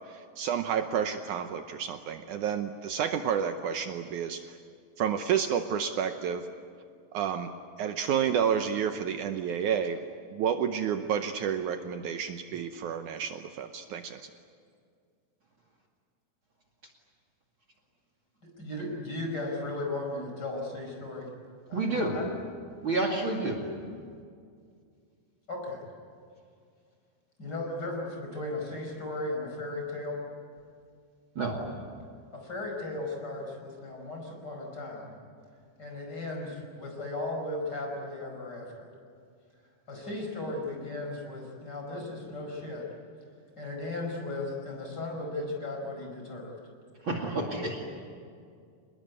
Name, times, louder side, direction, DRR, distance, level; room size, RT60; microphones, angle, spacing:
voice 1, 0.1-4.6 5.0-6.5 7.1-7.5 7.8-10.0 10.3-14.3, right 8 dB, 70° right, 7 dB, 2.2 m, -30 dB
voice 2, 18.6-21.3 21.7-22.2 25.5-25.8 27.4-30.2 32.3-35.1 35.8-38.9 39.9-42.9 43.6-46.5, left 2 dB, 30° left, 1 dB, 5.7 m, -36 dB
voice 3, 21.7-22.2 22.8-23.6 31.3-31.6 47.0-47.8, right 2 dB, 40° right, 3 dB, 2.8 m, -29 dB
27.5 x 20.5 x 9.7 m, 2.2 s
omnidirectional pair, 3.9 m